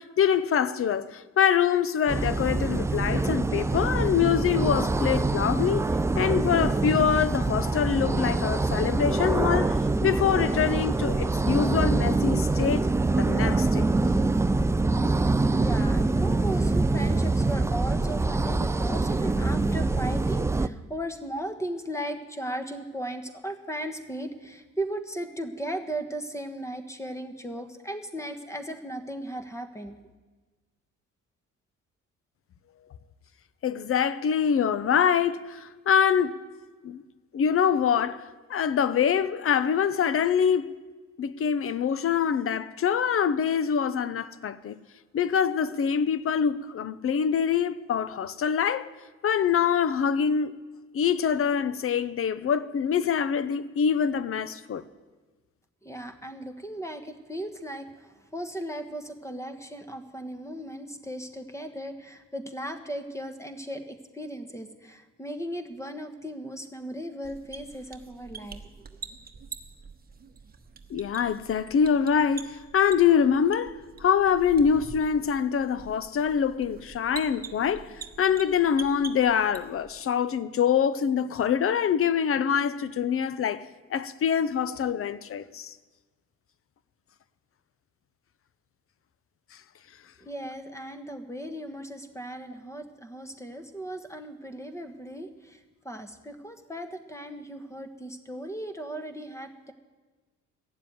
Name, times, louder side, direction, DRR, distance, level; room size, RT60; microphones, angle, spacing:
voice 1, 0.0-5.9 6.1-12.9 13.2-13.9 33.6-36.4 36.8-37.0 37.3-38.2 38.5-40.7 41.2-44.8 45.1-48.9 49.2-50.5 50.9-54.8 70.9-77.9 78.2-83.6 83.9-85.7, left 7 dB, 45° left, 0.7 m, -25 dB
sound 1, 2.1-20.7, right 3 dB, 10° right, 0.3 m, -25 dB
voice 2, 15.6-30.0 55.8-68.8 90.2-99.7, right 1 dB, 10° left, 1.3 m, -37 dB
sound 2, 67.2-80.0, right 5 dB, 30° right, 1.1 m, -45 dB
14.0 x 7.4 x 9.3 m
cardioid pair, 90°, 30 cm